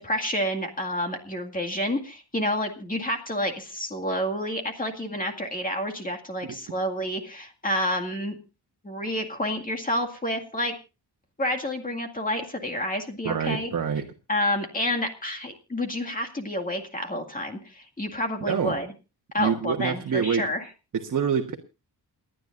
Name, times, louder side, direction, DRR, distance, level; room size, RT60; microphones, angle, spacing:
voice 1, 0.0-8.4 8.8-10.8 11.4-13.7 14.3-18.9 19.3-20.6, left 1 dB, 20° left, 3 dB, 2.1 m, -29 dB
voice 2, 13.2-14.0 18.4-18.8 19.4-20.4 20.9-21.5, right 7 dB, 50° right, 2 dB, 1.3 m, -26 dB
29.0 x 10.5 x 2.6 m, 0.30 s
wide cardioid pair, 140°, 40 cm